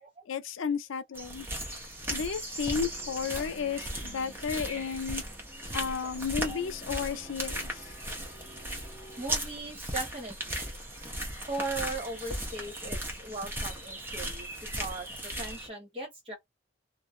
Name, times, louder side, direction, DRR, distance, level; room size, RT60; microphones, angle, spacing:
voice 1, 0.3-1.5 2.1-5.2 5.7-7.9, left 6 dB, 85° left, 0.5 m, -33 dB
sound 1, 1.2-15.7, right 1 dB, 10° right, 0.7 m, -37 dB
sound 2, 2.9-9.2, right 1 dB, 10° left, 1.0 m, -53 dB
voice 2, 9.2-10.6 11.5-14.5 14.8-16.3, right 2 dB, 30° right, 1.2 m, -38 dB
2.5 x 2.0 x 2.6 m
head